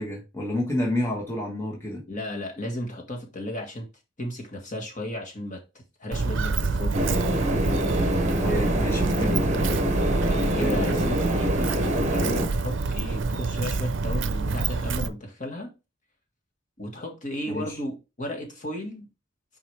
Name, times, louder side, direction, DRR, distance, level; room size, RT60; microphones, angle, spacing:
voice 1, 0.0-2.0 8.4-9.5 10.5-11.0 17.5-17.8, left 1 dB, 15° left, 1.5 m, -29 dB
voice 2, 2.1-3.9 4.2-7.0 10.2-15.7 16.8-19.1, left 1 dB, 40° left, 1.8 m, -34 dB
Walk footsteps, 6.1-15.1, right 4 dB, 65° right, 0.6 m, -27 dB
sound 1, 6.9-12.5, equal, 35° right, 1.2 m, -26 dB
6.4 x 4.9 x 3.4 m
head